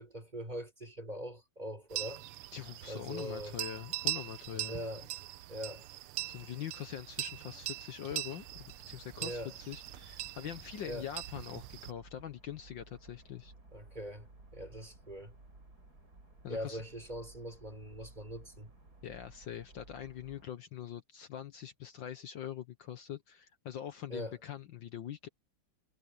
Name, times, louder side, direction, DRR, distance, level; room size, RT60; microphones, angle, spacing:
voice 1, 0.0-2.2 2.9-3.6 4.5-5.1 5.5-5.8 9.2-9.5 10.8-11.1 13.7-15.3 16.5-18.7 24.1-24.4, equal, 20° right, 4.9 m, -42 dB
sound 1, 1.9-11.9, right 15 dB, 90° right, 1.6 m, -42 dB
voice 2, 2.5-4.8 6.3-13.5 16.4-16.8 19.0-25.3, left 10 dB, 65° left, 1.6 m, -43 dB
sound 2, 8.4-20.5, right 2 dB, 45° right, 5.1 m, -57 dB
omnidirectional pair, 2.3 m